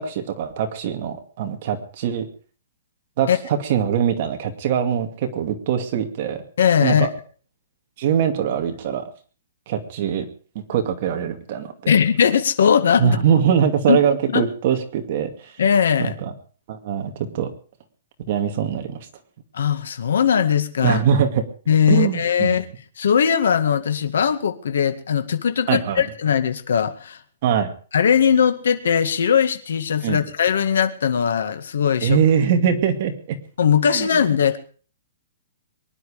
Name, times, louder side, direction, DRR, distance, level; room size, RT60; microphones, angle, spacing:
voice 1, 0.0-2.3 3.2-6.4 6.8-7.1 8.0-9.1 9.7-10.3 10.5-11.9 13.0-15.6 16.0-16.3 16.7-17.5 18.3-19.1 20.8-21.4 21.9-22.6 25.7-26.0 27.4-27.7 30.0-30.2 32.0-33.4 33.9-34.2, right 8 dB, 40° right, 5 dB, 2.3 m, -22 dB
voice 2, 6.6-7.1 11.9-13.2 13.9-14.0 14.3-14.4 15.6-16.1 19.5-21.0 21.7-22.7 23.0-27.2 27.9-32.2 33.6-34.6, left 7 dB, 75° left, 9 dB, 2.0 m, -19 dB
23.5 x 11.0 x 5.0 m, 0.40 s
hypercardioid pair, 170°, 0 cm